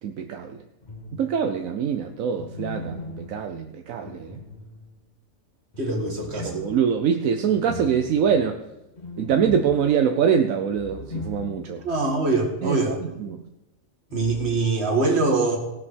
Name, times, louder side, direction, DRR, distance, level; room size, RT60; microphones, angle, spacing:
voice 1, 0.0-0.6 1.1-4.4 6.3-8.6 9.2-11.8 12.6-13.4, right 7 dB, 80° right, 6 dB, 1.1 m, -24 dB
sound 1, 0.8-1.6 2.3-5.1 5.7-12.0 12.2-12.3 14.1-14.5, left 2 dB, 30° left, 1.7 m, -39 dB
voice 2, 5.8-6.6 11.8-13.0 14.1-15.6, right 3 dB, 50° right, 1 dB, 2.3 m, -23 dB
17.5 x 6.1 x 6.2 m, 0.98 s
omnidirectional pair, 1.4 m